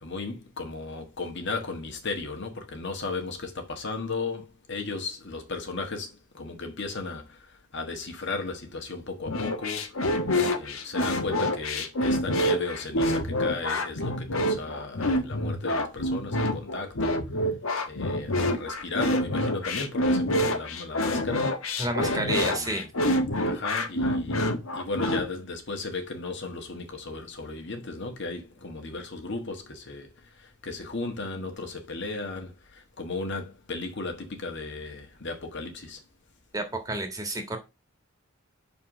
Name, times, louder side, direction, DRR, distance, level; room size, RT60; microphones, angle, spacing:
voice 1, 0.0-7.4 7.7-10.0 10.6-17.2 17.8-21.5 22.2-22.9 23.5-24.4 24.7-30.1 30.4-36.0, left 3 dB, 55° left, 1.5 m, -35 dB
sound 1, 9.3-25.2, left 1 dB, 70° left, 1.3 m, -27 dB
voice 2, 21.8-22.9 36.5-37.6, right 1 dB, 15° right, 1.6 m, -30 dB
5.8 x 4.3 x 6.2 m
head